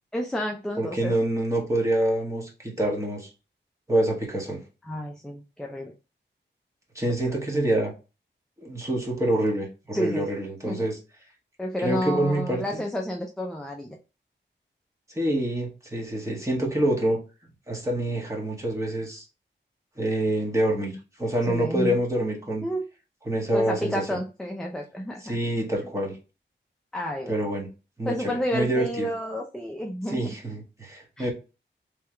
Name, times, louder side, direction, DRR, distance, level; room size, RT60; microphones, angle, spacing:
voice 1, 0.1-1.1 4.9-5.9 7.0-7.4 9.9-10.3 10.6-10.9 11.6-14.0 21.5-22.0 22.6-22.8 23.5-25.4 26.9-27.4 28.1-30.3 31.2-31.3, equal, 5° left, 1 dB, 0.5 m, -30 dB
voice 2, 0.8-3.3 3.9-4.6 6.9-7.9 8.6-11.0 11.8-12.8 15.1-17.2 17.7-19.2 20.0-22.6 23.2-24.2 25.2-26.2 27.3-27.7 28.0-29.1 30.1-31.3, right 1 dB, 15° right, -2 dB, 1.6 m, -26 dB
3.4 x 3.3 x 3.3 m, 0.31 s
wide cardioid pair, 85°, 20 cm